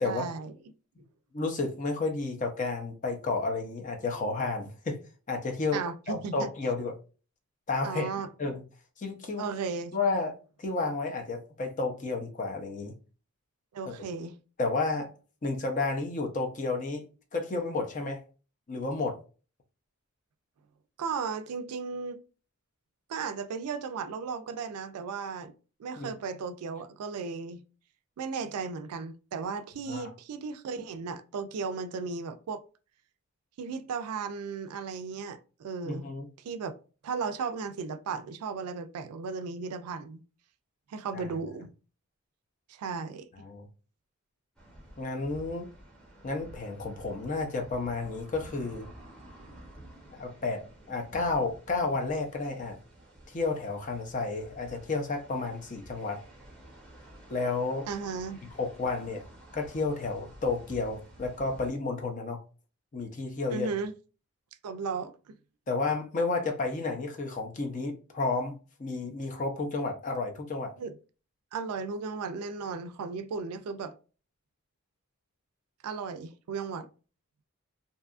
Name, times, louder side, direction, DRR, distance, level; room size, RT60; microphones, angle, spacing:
voice 1, 0.0-0.5 5.7-6.5 7.8-8.3 9.4-10.0 13.7-14.3 21.0-22.2 23.1-25.5 25.8-27.6 28.2-32.6 33.6-36.1 36.4-36.8 37.0-40.2 40.9-41.7 42.7-43.3 57.9-58.4 63.5-63.9 64.6-65.3 70.8-71.0 71.5-74.0 75.8-76.9, right 5 dB, 85° right, 0.3 m, -35 dB
voice 2, 1.3-5.0 5.3-5.8 6.1-6.9 7.7-8.1 8.4-8.6 9.0-9.4 9.9-12.9 13.9-14.0 14.6-15.1 15.4-17.0 17.3-18.2 18.7-19.2 26.0-26.1 29.9-30.1 35.8-36.3 41.1-41.2 43.4-43.7 45.0-45.7 46.2-48.9 50.1-52.8 53.3-56.2 57.3-57.9 58.6-59.2 59.5-62.4 62.9-63.7 65.7-70.7, left 3 dB, 35° left, 0.5 m, -31 dB
sound 1, 44.6-61.7, right 1 dB, ahead, 0.8 m, -51 dB
2.7 x 2.3 x 2.4 m
head